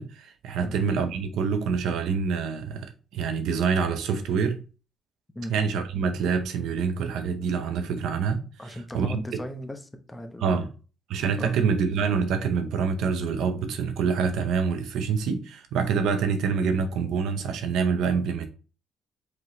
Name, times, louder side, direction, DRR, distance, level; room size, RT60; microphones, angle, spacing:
voice 1, 0.0-4.6 5.5-9.2 10.4-10.7 11.1-18.5, right 5 dB, 85° right, 0.6 m, -26 dB
voice 2, 8.6-10.7 11.4-11.6, equal, 15° left, 0.8 m, -37 dB
4.9 x 3.1 x 3.0 m
cardioid pair, 90°, 0 cm